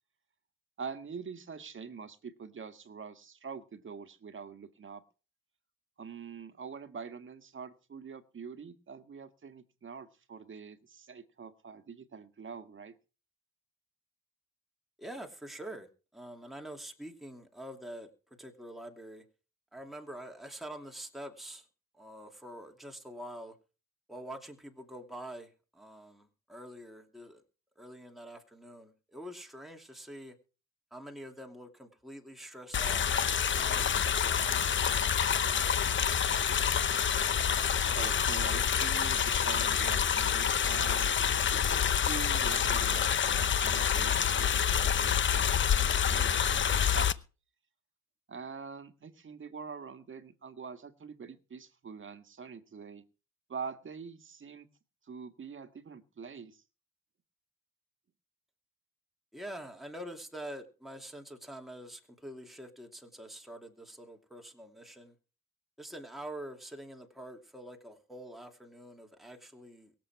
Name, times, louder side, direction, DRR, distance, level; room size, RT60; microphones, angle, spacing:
voice 1, 0.8-5.0 6.0-12.9 37.9-41.1 41.5-47.2 48.3-53.0 53.5-54.7 55.0-56.6, right 6 dB, 40° right, 1.8 m, -45 dB
voice 2, 15.0-19.2 19.7-21.7 21.9-23.6 24.1-27.4 27.8-30.4 30.9-35.3 59.3-65.1 65.8-69.9, right 1 dB, ahead, 2.6 m, -46 dB
sound 1, 32.7-47.1, left 8 dB, 40° left, 0.9 m, -27 dB
23.0 x 7.7 x 4.7 m
cardioid pair, 90°, 30 cm